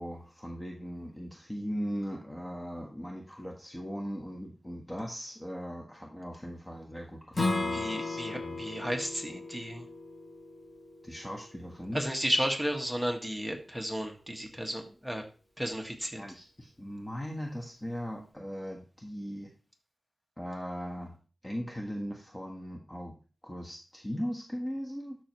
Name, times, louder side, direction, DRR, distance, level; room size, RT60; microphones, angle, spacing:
voice 1, 0.0-8.6 11.0-12.0 16.1-19.5 20.4-21.1 21.4-23.1 23.4-25.2, equal, 15° left, 0 dB, 1.4 m, -39 dB
Strum, 7.3-12.5, left 2 dB, 40° left, 2.3 m, -36 dB
voice 2, 7.7-9.9 11.9-15.2 15.6-16.2, equal, ahead, 2 dB, 1.9 m, -33 dB
12.5 x 6.2 x 3.1 m, 0.36 s
wide cardioid pair, 75°, 0 cm